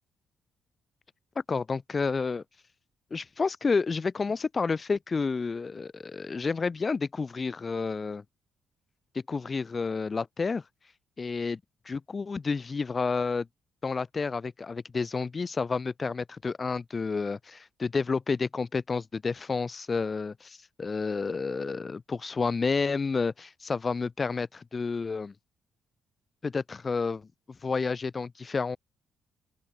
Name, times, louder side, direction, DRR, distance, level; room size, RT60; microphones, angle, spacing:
voice 1, 1.5-2.4 3.1-8.2 9.3-10.6 11.2-11.6 11.9-13.5 13.8-25.3 26.4-27.3 27.6-28.8, left 4 dB, 35° left, 1.1 m, -30 dB
open air
cardioid pair, 90°, 0 cm